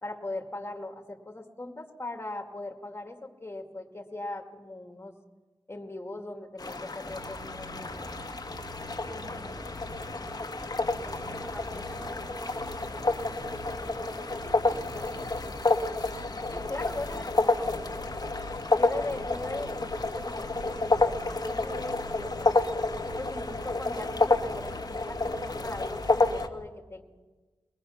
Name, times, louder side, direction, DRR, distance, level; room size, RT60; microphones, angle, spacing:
voice 1, 0.0-5.1 5.7-8.1 16.5-17.5 18.7-22.8 23.2-27.0, left 2 dB, 25° left, 4 dB, 2.2 m, -39 dB
sound 1, 6.6-26.5, left 2 dB, 45° left, 1.3 m, -30 dB
sound 2, 7.1-26.4, equal, 40° right, 4.5 m, -45 dB
voice 2, 9.1-9.5 10.9-15.7 16.6-17.8, right 1 dB, 15° right, -1 dB, 4.4 m, -47 dB
22.5 x 20.5 x 5.8 m, 1.3 s
wide cardioid pair, 105°, 9 cm